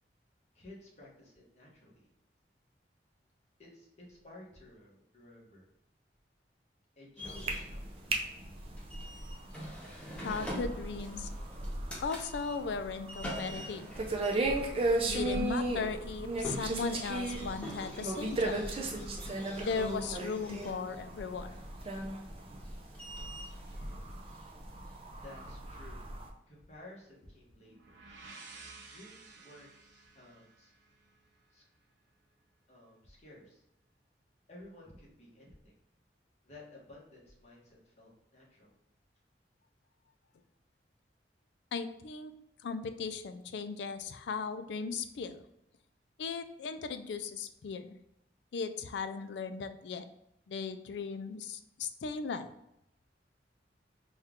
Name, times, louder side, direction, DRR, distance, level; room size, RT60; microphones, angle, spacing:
voice 1, 0.5-2.1 3.6-5.7 7.0-8.1 25.2-26.0 26.5-28.0 28.8-30.7 31.5-31.6 32.7-33.6 34.5-35.7 36.4-38.7, left 1 dB, 40° left, -4 dB, 1.2 m, -54 dB
sound 1, 7.2-25.5, equal, 5° left, 0.8 m, -46 dB
sound 2, 7.2-26.3, right 2 dB, 30° right, 0.5 m, -36 dB
voice 2, 10.2-11.3 12.0-13.8 14.9-18.6 19.6-21.5 41.7-42.3 42.6-45.4 46.2-48.0 48.5-50.0 50.5-52.5, left 5 dB, 75° left, 9 dB, 0.4 m, -37 dB
sound 3, 27.5-31.4, right 3 dB, 85° right, 0.7 m, -53 dB
4.3 x 2.3 x 3.5 m, 0.81 s
head